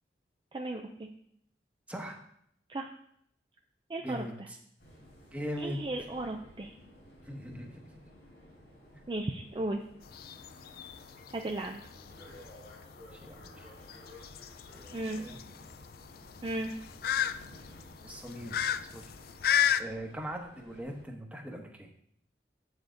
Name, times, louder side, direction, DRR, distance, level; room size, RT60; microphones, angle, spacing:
voice 1, 0.5-0.8 2.7-2.9 3.9-4.2 5.6-6.7 9.1-9.8 11.3-11.8 14.9-15.2 16.4-16.7, right 2 dB, 30° right, 3 dB, 0.4 m, -35 dB
voice 2, 1.9-2.2 4.0-4.6 5.3-5.8 7.2-7.7 13.0-13.7 15.0-15.4 18.0-19.1 19.8-21.9, equal, 10° right, 2 dB, 1.0 m, -40 dB
sound 1, 4.8-21.0, equal, 80° left, 3.4 m, -54 dB
sound 2, 10.0-19.8, left 9 dB, 55° left, 0.3 m, -34 dB
8.0 x 7.1 x 3.8 m, 0.70 s
head